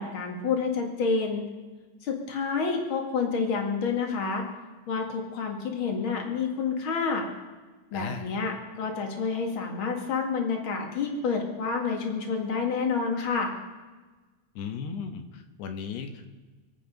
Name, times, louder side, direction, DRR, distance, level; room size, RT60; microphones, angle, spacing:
voice 1, 0.0-1.4 2.0-4.4 4.9-7.2 7.9-13.5, left 5 dB, 45° left, 2 dB, 1.7 m, -29 dB
voice 2, 7.9-8.3 14.6-16.3, left 6 dB, 70° left, 6 dB, 3.0 m, -36 dB
26.0 x 9.0 x 5.3 m, 1.3 s
omnidirectional pair, 5.1 m